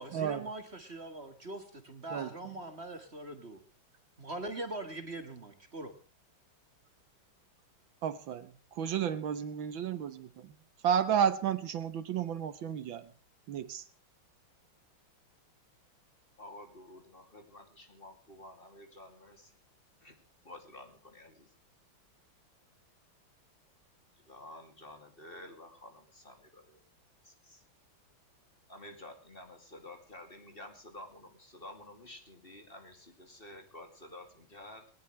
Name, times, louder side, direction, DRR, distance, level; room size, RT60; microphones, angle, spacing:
voice 1, 0.0-3.6 4.2-5.9, right 2 dB, 30° right, 8 dB, 1.9 m, -42 dB
voice 2, 8.0-10.5 10.8-13.1 13.5-13.8, right 8 dB, 70° right, 14 dB, 1.7 m, -32 dB
voice 3, 16.4-19.5 20.0-20.1 20.4-21.5 24.3-26.8 27.2-27.6 28.7-34.8, left 1 dB, 25° left, 6 dB, 2.7 m, -51 dB
19.5 x 19.0 x 3.2 m, 0.37 s
omnidirectional pair, 2.3 m